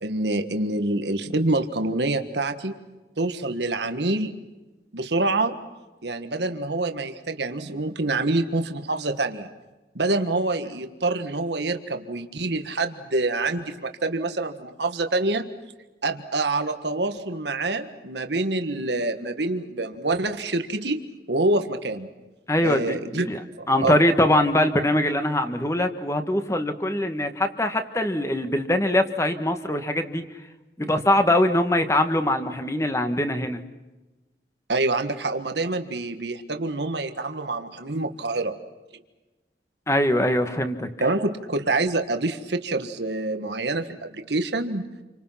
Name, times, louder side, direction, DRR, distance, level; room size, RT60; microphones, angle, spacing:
voice 1, 0.0-2.7 3.2-4.3 4.9-5.5 6.0-9.5 9.9-15.4 16.0-21.0 21.3-22.1 22.6-23.3 23.6-24.0 34.7-38.6 41.0-44.9, right 2 dB, 80° right, 7 dB, 1.6 m, -26 dB
voice 2, 22.5-23.4 23.7-30.3 30.8-33.6 39.9-40.9, left 1 dB, 15° left, 7 dB, 1.5 m, -22 dB
29.5 x 25.0 x 5.8 m, 1.1 s
head